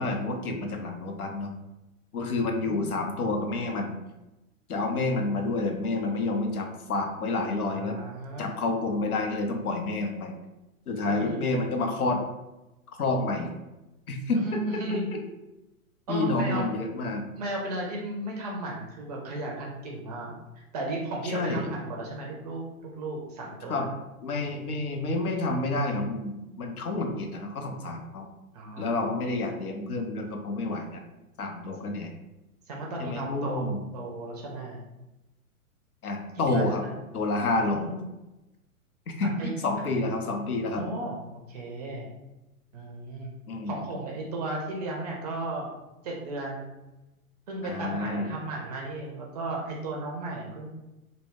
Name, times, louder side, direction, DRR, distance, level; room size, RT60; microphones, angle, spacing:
voice 1, 0.0-1.5 2.1-3.9 4.7-8.0 8.4-10.3 10.9-12.2 13.0-13.5 14.1-14.6 14.9-15.0 16.1-17.2 21.3-21.7 23.7-23.9 24.2-28.3 28.8-31.0 31.4-32.1 33.0-33.8 36.0-36.8 37.1-37.9 39.2-40.9 43.5-43.9 47.6-48.3, left 2 dB, 80° left, 3 dB, 0.6 m, -29 dB
voice 2, 2.6-2.9 4.9-5.1 7.6-8.5 11.1-11.4 14.3-15.1 16.1-16.7 17.0-17.1 17.4-23.8 28.5-29.2 32.7-34.8 36.3-37.0 37.5-38.0 39.2-39.5 40.7-42.1 42.7-43.3 43.7-45.7 46.0-46.7 47.5-50.7, right 2 dB, 30° right, -2 dB, 0.4 m, -35 dB
2.1 x 2.0 x 3.4 m, 0.98 s
figure-of-eight pair, 105°, 43 cm